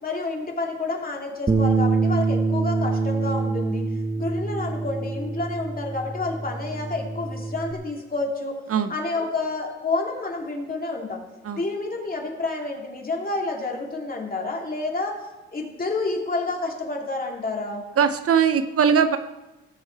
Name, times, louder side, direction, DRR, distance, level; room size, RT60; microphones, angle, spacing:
voice 1, 0.0-3.8 4.2-8.6 8.9-11.2 11.6-15.2 15.5-17.8, left 3 dB, 30° left, 0 dB, 2.7 m, -29 dB
Bass guitar, 1.5-7.7, right 3 dB, 15° right, 1.0 m, -25 dB
voice 2, 18.0-19.2, right 7 dB, 50° right, 10 dB, 0.7 m, -20 dB
18.5 x 6.9 x 4.6 m, 1.1 s
cardioid pair, 90°, 30 cm